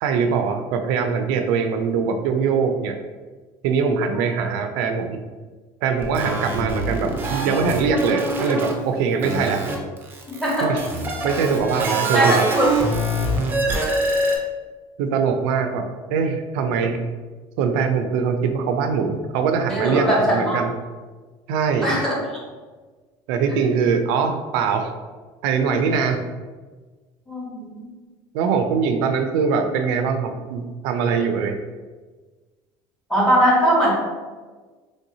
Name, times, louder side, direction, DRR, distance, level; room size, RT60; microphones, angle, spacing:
voice 1, 0.0-3.0 3.6-5.2 5.8-9.7 10.6-10.8 11.2-12.4 15.0-15.8 16.1-17.0 17.6-20.7 21.5-22.1 23.3-24.9 25.4-26.2 28.3-31.6, right 5 dB, 90° right, 6 dB, 0.4 m, -22 dB
sound 1, 6.0-8.7 9.2-14.4, right 1 dB, 20° right, 0.5 m, -25 dB
voice 2, 10.4-10.8 12.1-12.7 19.7-20.6 21.8-22.1 27.3-27.8 33.1-33.9, right 1 dB, 5° left, -5 dB, 0.9 m, -20 dB
3.2 x 2.7 x 2.7 m, 1.4 s
cardioid pair, 150°, 11 cm